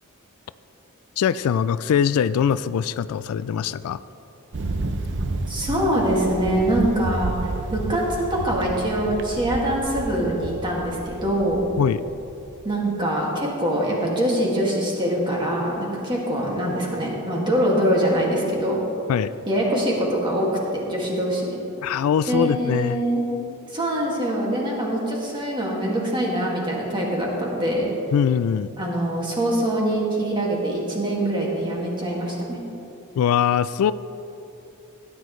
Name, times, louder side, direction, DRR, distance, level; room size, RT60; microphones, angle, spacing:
voice 1, 1.2-4.0 11.8-12.0 19.1-19.3 21.8-23.0 28.1-28.7 33.2-33.9, left 8 dB, 75° left, 16 dB, 0.3 m, -22 dB
Thunder, 4.5-12.8, right 2 dB, 55° right, 0.6 m, -31 dB
voice 2, 5.5-11.6 12.6-18.8 19.5-21.6 22.3-23.2 23.7-27.9 28.8-32.6, right 1 dB, 20° right, -3 dB, 2.1 m, -24 dB
16.5 x 10.0 x 3.2 m, 2.9 s
head